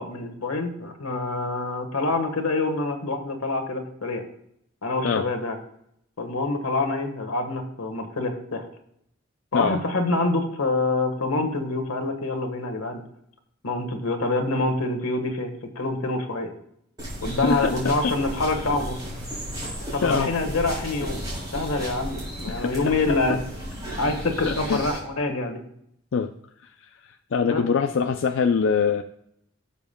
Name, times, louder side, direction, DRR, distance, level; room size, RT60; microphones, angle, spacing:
voice 1, 0.0-4.2 4.8-5.6 6.2-8.7 9.5-13.0 13.6-16.5 17.2-19.0 19.9-21.2 21.5-23.4 24.0-25.6 27.4-27.6, left 2 dB, 90° left, 6 dB, 1.5 m, -26 dB
sound 1, 17.0-25.0, equal, 20° right, 4.0 m, -34 dB
voice 2, 17.4-17.8 18.0-18.1 20.0-20.3 22.5-23.2 24.4-24.9 26.1-26.3 26.8-29.0, left 5 dB, 65° left, 7 dB, 0.4 m, -24 dB
17.5 x 7.1 x 2.2 m, 0.74 s
head